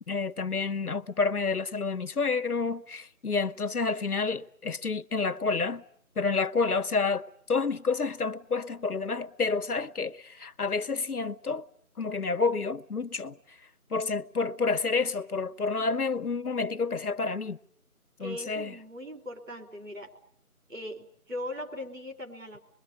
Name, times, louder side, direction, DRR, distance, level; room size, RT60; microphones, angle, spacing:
voice 1, 0.1-5.8 6.2-7.2 7.5-11.6 12.0-13.4 13.9-17.6 18.2-18.7, left 4 dB, 80° left, 1.2 m, -29 dB
voice 2, 18.2-20.1 20.7-22.6, left 1 dB, 60° right, 3.3 m, -39 dB
26.0 x 22.0 x 8.9 m
figure-of-eight pair, 175°, 44 cm